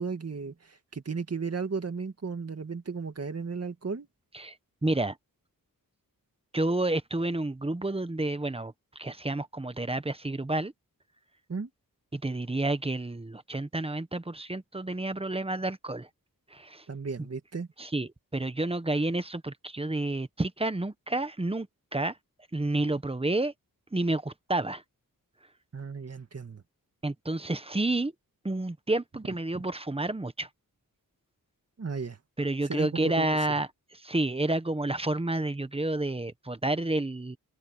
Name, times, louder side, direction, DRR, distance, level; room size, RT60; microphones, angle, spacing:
voice 1, 0.0-4.1 11.5-11.7 16.9-17.7 25.7-26.6 29.5-29.6 31.8-32.2 32.6-33.6, right 5 dB, 45° right, 2.3 m, -35 dB
voice 2, 4.8-5.2 6.5-10.7 12.1-16.1 16.5-16.8 17.8-21.7 21.9-22.2 22.5-23.5 23.9-24.8 27.0-28.1 28.4-30.5 32.4-33.7 34.0-37.4, right 2 dB, 15° right, 1.1 m, -30 dB
wide cardioid pair, 100°, 35 cm